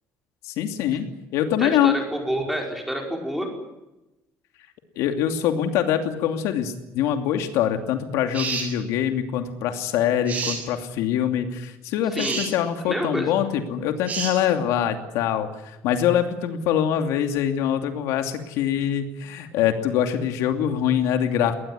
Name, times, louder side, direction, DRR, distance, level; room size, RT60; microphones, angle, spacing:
voice 1, 0.4-1.1 1.3-2.0 5.0-21.5, left 9 dB, 75° left, 7 dB, 2.8 m, -24 dB
voice 2, 1.6-3.5 12.1-12.5 12.9-13.3, equal, ahead, 2 dB, 5.1 m, -28 dB
sound 1, 8.3-8.7 10.3-10.6 12.2-12.5 14.1-14.4, right 4 dB, 25° right, 7.7 m, -28 dB
22.0 x 19.5 x 9.9 m, 0.95 s
cardioid pair, 175°, 5 cm